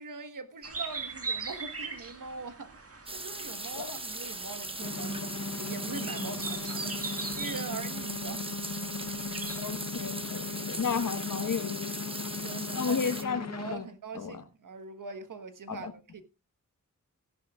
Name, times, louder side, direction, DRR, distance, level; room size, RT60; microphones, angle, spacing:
voice 1, 0.0-2.8 3.1-8.5 12.3-16.2, right 4 dB, 80° right, 1.4 m, -42 dB
sound 1, 0.6-9.7, right 4 dB, 45° right, 1.8 m, -41 dB
sound 2, 3.1-13.2, right 2 dB, 15° right, 0.9 m, -39 dB
sound 3, 4.8-13.8, left 4 dB, 55° left, 0.8 m, -38 dB
voice 2, 9.6-11.9 12.8-13.4 13.7-13.8 14.1-14.3 15.7-15.9, left 6 dB, 75° left, 1.4 m, -32 dB
16.0 x 11.0 x 2.4 m
wide cardioid pair, 110°, 32 cm